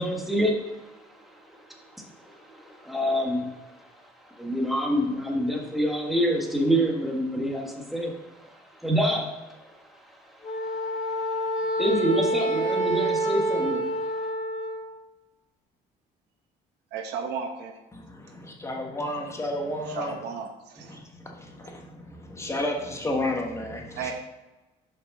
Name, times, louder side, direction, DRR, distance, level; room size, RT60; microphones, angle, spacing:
voice 1, 0.0-3.9 4.2-14.0, equal, ahead, 0 dB, 1.5 m, -28 dB
Wind instrument woodwind instrument, 10.4-14.9, right 1 dB, 45° left, 1.4 m, -27 dB
voice 2, 16.9-17.7 19.9-21.0 24.0-24.1, right 6 dB, 85° right, 5 dB, 1.1 m, -34 dB
voice 3, 17.9-20.2 20.8-24.1, left 1 dB, 15° left, 0 dB, 1.3 m, -32 dB
6.4 x 5.4 x 5.4 m, 1.1 s
cardioid pair, 110°, 17 cm